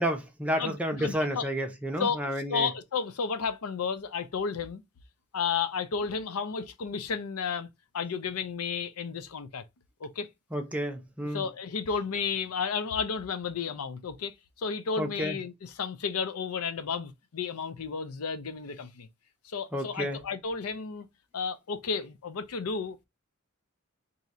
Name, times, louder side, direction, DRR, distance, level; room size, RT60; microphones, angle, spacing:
voice 1, 0.0-2.7 10.5-11.5 15.0-15.4 19.7-20.2, equal, 5° right, 0.6 m, -31 dB
voice 2, 0.5-1.4 2.0-2.2 2.5-4.8 5.3-7.7 7.9-9.6 10.0-10.3 11.3-19.1 19.4-21.1 21.3-23.0, left 5 dB, 80° left, 0.5 m, -32 dB
2.7 x 2.4 x 4.1 m
head